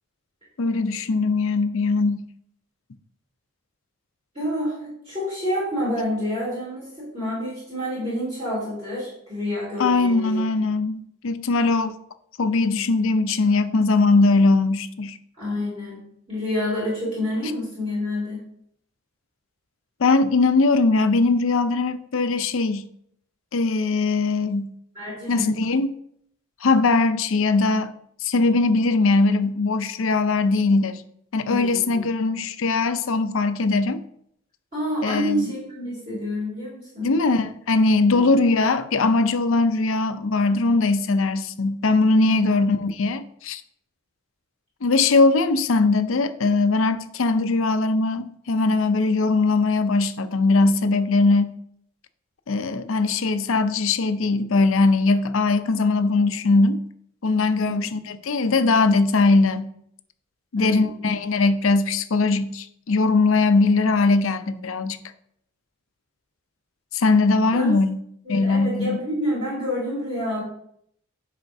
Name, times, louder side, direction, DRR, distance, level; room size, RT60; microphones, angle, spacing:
voice 1, 0.6-2.2 9.8-12.0 12.4-15.2 20.0-22.8 23.5-24.7 25.3-25.9 26.6-27.9 28.2-31.0 31.3-34.0 35.0-35.4 37.0-43.6 44.8-51.5 52.5-56.8 57.2-59.7 60.5-65.0 66.9-68.0 68.3-69.0, left 3 dB, 70° left, 0.5 m, -20 dB
voice 2, 4.3-10.4 15.4-18.4 24.9-25.5 31.5-32.0 34.7-37.1 38.1-38.4 42.2-42.4 57.6-57.8 60.5-61.1 67.5-67.7 68.2-70.4, left 1 dB, 30° right, 3.0 m, -28 dB
10.5 x 5.0 x 2.7 m
head